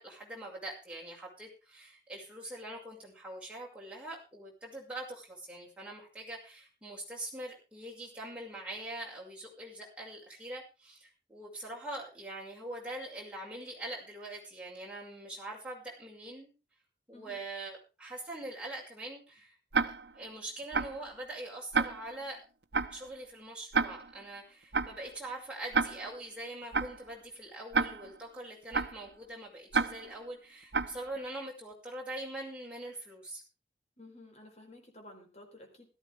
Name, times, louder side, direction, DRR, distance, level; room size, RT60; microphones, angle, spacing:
voice 1, 0.0-16.5 17.1-19.6 19.8-22.4 22.9-33.4, right 1 dB, 5° right, -4 dB, 6.0 m, -43 dB
voice 2, 17.1-17.5 34.0-35.8, left 1 dB, 40° left, 2 dB, 4.4 m, -53 dB
Tick-tock, 19.7-20.2 20.7-21.1 21.7-22.2 22.7-23.1 23.7-24.2 24.7-25.1 25.7-26.2 26.7-27.1 27.7-28.2 28.7-29.1 29.7-30.2 30.7-31.1, right 4 dB, 75° right, 1.0 m, -31 dB
17.0 x 14.0 x 3.6 m, 0.31 s
head